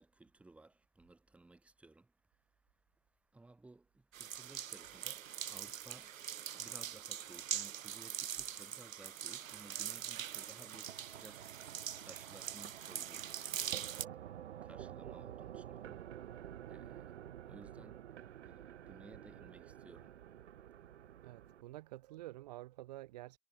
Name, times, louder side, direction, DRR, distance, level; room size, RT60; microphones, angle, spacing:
voice 1, 0.0-21.5, right 2 dB, 5° right, 4.0 m, -60 dB
sound 1, 4.1-14.1, right 10 dB, 75° right, 1.5 m, -43 dB
sound 2, 10.2-21.6, right 11 dB, 55° right, 1.3 m, -51 dB
voice 2, 21.2-23.4, right 17 dB, 30° right, 1.6 m, -49 dB
hypercardioid pair, 170°, 41 cm